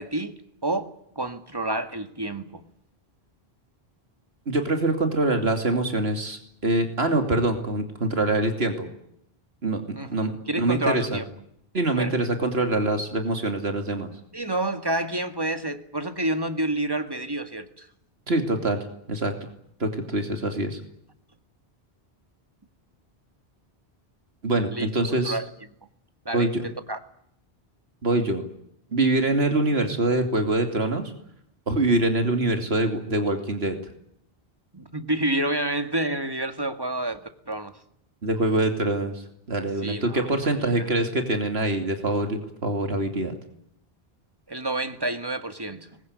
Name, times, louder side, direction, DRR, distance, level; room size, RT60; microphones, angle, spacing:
voice 1, 0.0-2.6 10.0-10.1 10.5-11.3 12.0-12.1 14.3-17.9 24.7-24.9 25.2-25.5 26.3-27.0 34.7-37.2 37.5-37.8 39.8-40.9 44.5-46.0, right 1 dB, 25° right, 2.0 m, -29 dB
voice 2, 4.5-8.9 9.6-9.8 10.1-11.2 11.7-14.1 18.3-19.3 19.8-20.8 24.4-25.4 26.3-26.6 28.0-28.4 28.9-31.1 31.7-33.8 38.2-39.1 39.5-43.3, right 2 dB, 80° right, 3.0 m, -24 dB
24.5 x 21.5 x 9.6 m
omnidirectional pair, 1.0 m